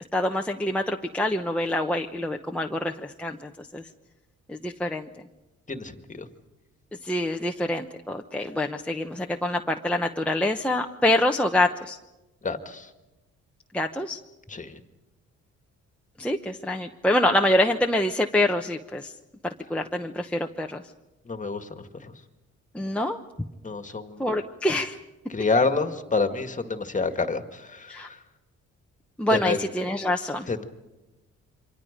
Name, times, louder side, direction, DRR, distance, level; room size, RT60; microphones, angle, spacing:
voice 1, 0.1-3.8 4.5-5.1 7.0-12.0 13.7-14.2 16.2-19.1 19.7-20.8 22.7-23.2 24.2-25.0 27.9-28.1 29.2-30.5, left 1 dB, 5° left, 2 dB, 1.0 m, -26 dB
voice 2, 5.7-6.3 12.4-12.9 14.5-14.8 21.3-22.1 23.6-24.4 25.3-28.2 29.3-29.6 30.5-30.6, left 4 dB, 25° left, 8 dB, 1.9 m, -28 dB
28.0 x 25.0 x 5.2 m, 1.0 s
cardioid pair, 90°, 30 cm